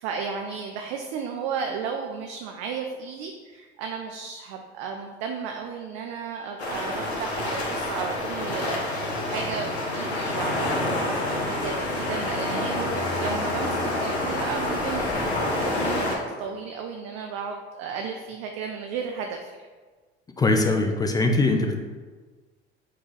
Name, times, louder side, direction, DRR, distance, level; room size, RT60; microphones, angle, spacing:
voice 1, 0.0-19.5, right 6 dB, 55° right, 2 dB, 0.4 m, -34 dB
sound 1, 6.6-16.2, left 1 dB, 85° left, 0.7 m, -27 dB
voice 2, 20.4-21.7, left 2 dB, 15° left, 3 dB, 0.3 m, -21 dB
4.0 x 2.3 x 3.8 m, 1.4 s
figure-of-eight pair, 65°, 32 cm